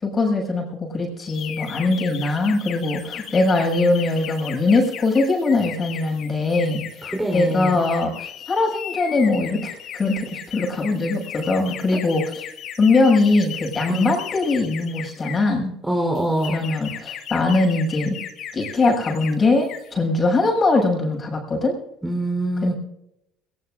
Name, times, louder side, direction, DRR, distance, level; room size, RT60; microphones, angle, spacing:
voice 1, 0.0-12.2 12.8-15.7 16.5-18.2 18.5-21.7 22.6-22.7, left 3 dB, 35° left, 1 dB, 6.5 m, -21 dB
sound 1, 1.3-15.5 16.1-19.3 19.6-19.9, left 9 dB, 60° left, 1.6 m, -36 dB
voice 2, 7.0-7.8 13.9-14.1 15.8-16.6 22.0-22.7, right 1 dB, 10° right, 2 dB, 4.0 m, -23 dB
21.5 x 20.5 x 2.6 m, 0.81 s
hypercardioid pair, 65°, 0 cm